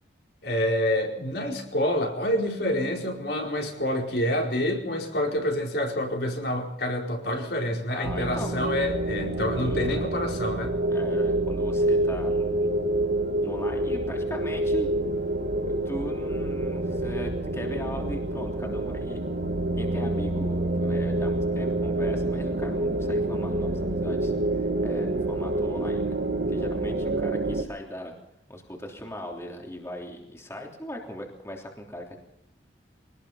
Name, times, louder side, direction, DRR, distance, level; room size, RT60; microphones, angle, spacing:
voice 1, 0.4-10.7, left 1 dB, 65° left, 1 dB, 4.6 m, -27 dB
voice 2, 7.9-8.6 9.6-10.0 10.9-12.7 13.4-14.9 15.7-19.2 19.8-26.2 26.5-28.1 28.5-32.2, equal, 15° left, 1 dB, 3.2 m, -38 dB
sound 1, 8.0-27.6, right 1 dB, 60° right, 2.1 m, -27 dB
24.0 x 19.0 x 5.7 m, 0.82 s
head